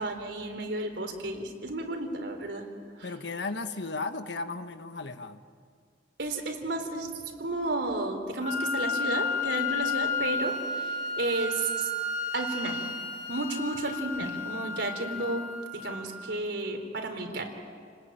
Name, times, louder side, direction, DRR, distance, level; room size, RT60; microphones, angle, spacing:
voice 1, 0.0-2.6 3.0-3.1 6.2-11.9 12.3-12.9 13.3-15.5 15.7-17.5, right 2 dB, 80° right, 4 dB, 3.9 m, -32 dB
voice 2, 3.0-5.4, left 3 dB, 75° left, 9 dB, 1.4 m, -35 dB
Wind instrument woodwind instrument, 8.4-16.4, left 3 dB, 45° left, 2.4 m, -32 dB
30.0 x 20.0 x 9.1 m, 2.1 s
head